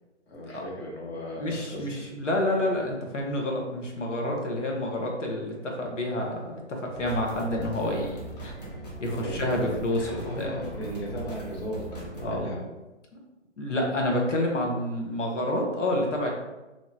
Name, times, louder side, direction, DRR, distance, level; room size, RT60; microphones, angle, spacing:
voice 1, 0.3-2.2 9.0-12.7, equal, 55° left, -3 dB, 1.1 m, -37 dB
voice 2, 1.4-8.5 9.0-10.5 12.2-12.5 13.6-16.3, left 1 dB, 85° left, 0 dB, 0.9 m, -28 dB
sound 1, 6.9-12.4, right 2 dB, 35° left, 0.7 m, -40 dB
2.8 x 2.2 x 2.7 m, 1.1 s
hypercardioid pair, 155°, 36 cm